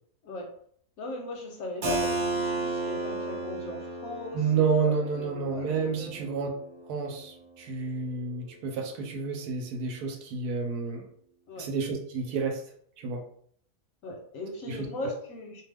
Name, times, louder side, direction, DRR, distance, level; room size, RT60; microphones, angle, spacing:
voice 1, 1.0-6.2 11.5-11.7 14.0-15.7, left 2 dB, 70° left, 1 dB, 0.9 m, -39 dB
Keyboard (musical), 1.8-7.4, right 2 dB, 55° right, 0.8 m, -34 dB
voice 2, 4.3-6.5 6.9-11.1 11.6-12.6 13.0-13.2 14.7-15.1, right 5 dB, 75° right, 2 dB, 1.1 m, -30 dB
2.6 x 2.2 x 3.3 m, 0.62 s
omnidirectional pair, 1.7 m